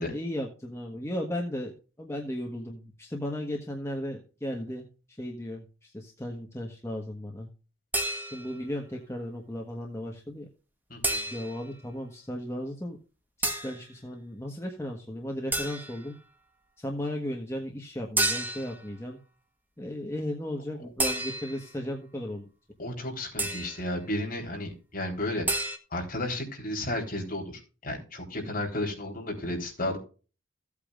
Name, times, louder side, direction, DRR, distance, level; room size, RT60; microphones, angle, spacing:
voice 1, 0.0-7.5 8.2-10.5 11.3-13.0 13.4-16.1 16.8-19.2 19.8-22.5, left 1 dB, 15° left, 0 dB, 1.4 m, -35 dB
sound 1, 7.9-8.6 11.0-11.7 13.4-13.8 15.5-16.1 18.2-18.8 21.0-21.7 23.4-23.9 25.5-25.8, right 1 dB, 10° right, 1.3 m, -30 dB
voice 2, 10.9-11.3 22.8-25.4 25.9-30.0, left 1 dB, 45° left, 1 dB, 3.9 m, -33 dB
16.0 x 8.5 x 2.5 m, 0.34 s
head